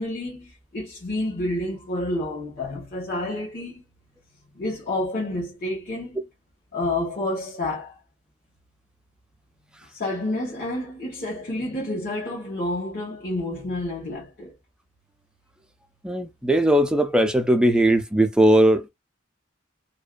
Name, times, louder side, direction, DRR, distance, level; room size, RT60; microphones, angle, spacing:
voice 1, 0.0-3.8 4.5-6.2 6.7-8.0 9.9-14.5, left 1 dB, 45° left, 1.0 m, -29 dB
voice 2, 16.0-18.9, right 1 dB, 5° right, 0.3 m, -19 dB
2.5 x 2.1 x 2.4 m
head